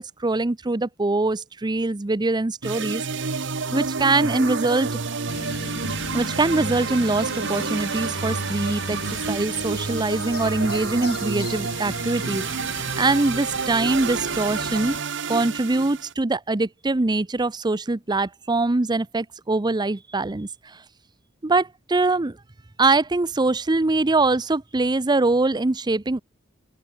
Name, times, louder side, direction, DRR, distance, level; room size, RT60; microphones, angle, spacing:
voice 1, 0.0-3.0 3.7-4.9 6.1-9.0 9.3-12.5 13.0-15.0 15.3-20.8 21.4-22.4 22.8-26.2, right 2 dB, 20° right, 0.6 m, -23 dB
sound 1, 2.6-16.1, right 5 dB, 65° right, 1.3 m, -29 dB
sound 2, 5.3-15.0, left 3 dB, 50° left, 1.6 m, -37 dB
open air
head